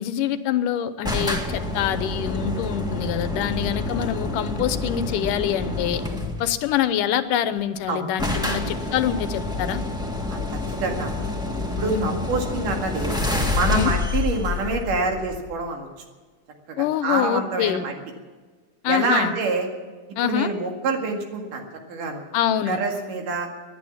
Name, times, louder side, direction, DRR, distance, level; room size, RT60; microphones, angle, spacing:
voice 1, 0.0-6.0 6.4-9.8 11.9-12.2 13.7-13.9 16.8-17.8 18.8-19.3 20.2-20.5 22.3-22.8, left 10 dB, 90° left, 12 dB, 2.5 m, -25 dB
sound 1, 1.0-6.6 7.6-7.7 7.8-7.9 8.2-15.7, left 2 dB, 5° right, 0.8 m, -28 dB
voice 2, 10.3-11.2 11.8-13.2 13.5-15.9 16.7-17.9 18.9-19.7 20.2-22.2 22.7-23.5, right 3 dB, 85° right, 3 dB, 3.6 m, -26 dB
18.5 x 10.5 x 7.2 m, 1.4 s
omnidirectional pair, 3.6 m